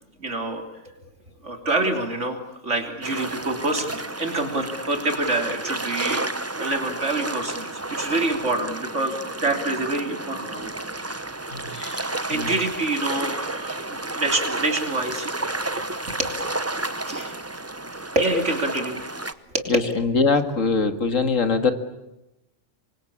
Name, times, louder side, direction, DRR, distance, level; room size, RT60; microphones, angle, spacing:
voice 1, 0.2-0.6 1.4-6.3 6.6-10.7 11.8-15.3 15.7-16.3 17.1-17.3 18.2-19.0 19.5-19.7, right 2 dB, 65° right, 4 dB, 3.7 m, -26 dB
sound 1, 3.0-19.3, right 2 dB, 15° right, 0.8 m, -31 dB
voice 2, 11.5-12.0 12.3-12.5 19.7-21.7, left 4 dB, 90° left, 8 dB, 2.4 m, -22 dB
27.0 x 24.0 x 8.7 m, 0.93 s
omnidirectional pair, 1.3 m